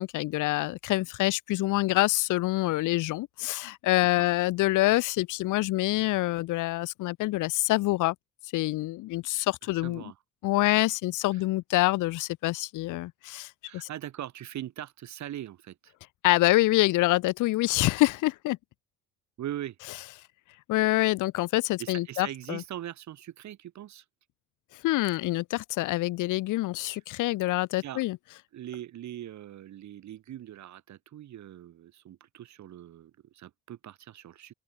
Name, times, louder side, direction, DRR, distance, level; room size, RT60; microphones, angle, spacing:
voice 1, 0.0-8.1 8.5-10.0 10.4-13.9 16.2-18.6 20.7-22.6 24.8-28.2, left 18 dB, 85° left, 0.6 m, -26 dB
voice 2, 9.6-10.2 11.3-11.4 13.6-15.9 19.4-19.8 21.8-24.0 26.8-27.0 27.8-28.0 28.5-34.5, right 12 dB, 65° right, 1.5 m, -41 dB
open air
cardioid pair, 90°, 30 cm